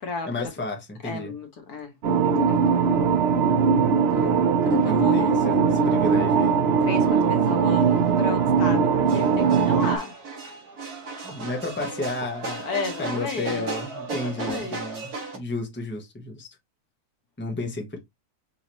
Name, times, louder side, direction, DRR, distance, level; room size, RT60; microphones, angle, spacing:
voice 1, 0.3-1.3 4.1-4.5 4.8-6.5 11.2-12.6 13.0-16.5 17.4-18.0, left 2 dB, 10° left, 0.9 m, -32 dB
voice 2, 1.0-1.9 2.2-2.6 4.1-4.3 4.6-5.7 6.8-10.2 12.6-13.7 14.2-14.8, left 3 dB, 75° left, 1.7 m, -33 dB
sound 1, 2.0-10.0, right 6 dB, 60° right, 0.7 m, -20 dB
sound 2, 4.8-15.4, right 3 dB, 75° right, 2.0 m, -37 dB
5.7 x 2.9 x 3.0 m
omnidirectional pair, 1.6 m